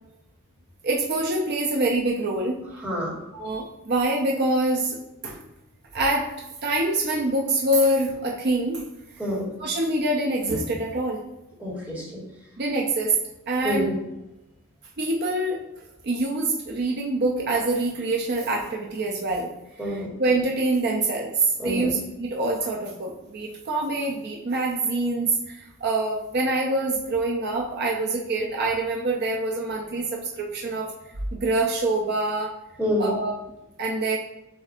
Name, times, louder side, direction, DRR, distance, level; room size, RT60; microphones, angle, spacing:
voice 1, 0.8-2.6 3.3-5.0 5.2-5.4 5.9-6.3 6.6-8.8 9.6-11.2 12.6-13.2 13.5-13.9 15.0-15.7 16.0-19.5 19.9-30.9 31.3-32.5 33.0-33.3 33.8-34.2, right 2 dB, 50° right, -1 dB, 0.5 m, -25 dB
voice 2, 2.7-3.2 9.2-9.5 11.6-12.2 13.6-14.0 19.8-20.1 21.6-21.9 32.8-33.2, equal, 10° right, -7 dB, 1.6 m, -27 dB
7.3 x 2.7 x 2.5 m, 0.90 s
head